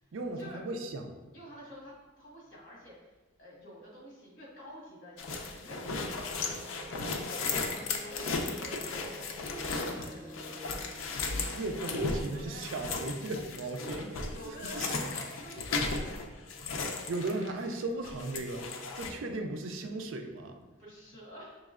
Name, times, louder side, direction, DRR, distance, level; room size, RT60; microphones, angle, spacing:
voice 1, 0.1-1.1 11.5-15.0 17.1-20.6, right 2 dB, 75° right, 5 dB, 0.4 m, -36 dB
voice 2, 1.3-6.2 7.1-7.5 7.9-9.1 9.8-10.3 11.8-13.0 13.9-14.0 14.3-16.3 20.8-21.6, equal, 60° left, -5 dB, 1.4 m, -49 dB
sound 1, 5.2-17.8 18.0-19.1, left 3 dB, 80° left, 0.5 m, -36 dB
sound 2, 5.7-14.9, right 1 dB, 25° right, 1.0 m, -50 dB
5.1 x 3.1 x 2.4 m, 1.2 s
head